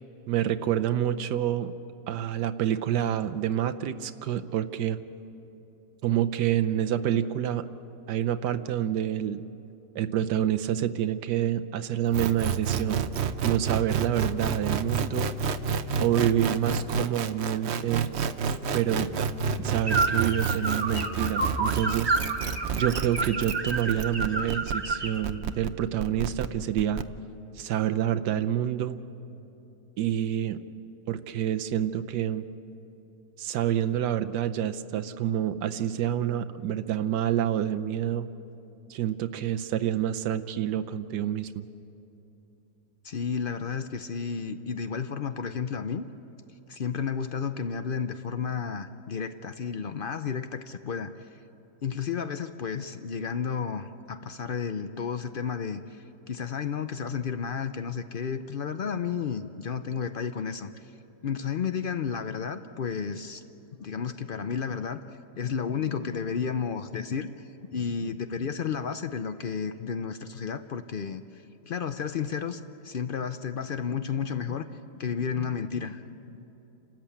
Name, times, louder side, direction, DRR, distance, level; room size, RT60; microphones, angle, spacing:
voice 1, 0.3-1.7 2.1-5.0 6.0-7.6 8.1-9.4 9.9-13.0 13.4-15.3 16.0-18.1 18.7-19.1 19.6-22.1 22.7-27.0 27.6-29.0 30.0-30.6 31.1-32.4 33.4-38.3 38.9-41.7, right 10 dB, 85° right, 9 dB, 1.3 m, -27 dB
sound 1, 12.1-27.0, right 6 dB, 55° right, 0.8 m, -29 dB
sound 2, 19.9-25.2, right 3 dB, 15° right, 1.5 m, -29 dB
voice 2, 43.0-46.0 46.7-51.4 51.8-60.9 61.2-63.4 63.8-67.3 67.7-76.4, left 6 dB, 75° left, 10 dB, 0.5 m, -32 dB
29.5 x 13.5 x 8.5 m, 2.9 s
omnidirectional pair, 1.8 m